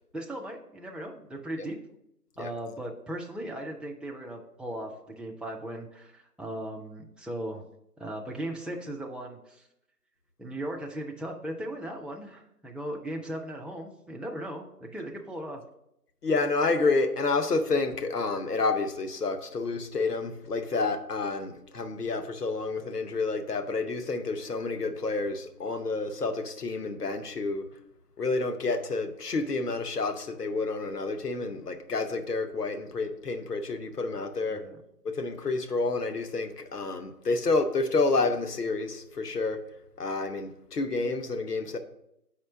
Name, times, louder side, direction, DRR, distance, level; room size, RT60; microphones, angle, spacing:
voice 1, 0.0-1.8 2.4-7.7 8.0-9.7 10.4-15.6 34.5-34.8, right 1 dB, ahead, 0 dB, 0.4 m, -37 dB
voice 2, 16.2-27.7 28.2-34.6 35.0-39.6 40.0-41.8, left 3 dB, 70° left, 8 dB, 0.9 m, -29 dB
5.5 x 4.3 x 6.0 m, 0.79 s
figure-of-eight pair, 170°, 49 cm